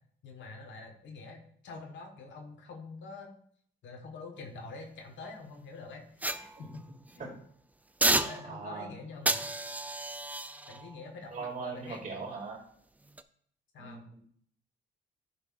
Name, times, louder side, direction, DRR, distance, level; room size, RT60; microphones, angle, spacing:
voice 1, 0.2-3.3 3.8-6.0 6.4-6.9 7.2-7.4 8.1-9.5 10.7-12.0 13.7-14.1, left 3 dB, 70° left, 3 dB, 1.5 m, -46 dB
sound 1, 6.2-7.2 8.0-8.8 9.3-12.5 13.0-13.2, right 2 dB, 10° right, 0.4 m, -33 dB
voice 2, 8.4-8.9 11.3-12.6 13.8-14.2, right 4 dB, 40° right, -1 dB, 2.6 m, -40 dB
11.0 x 5.5 x 2.6 m, 0.62 s
cardioid pair, 90°, 20 cm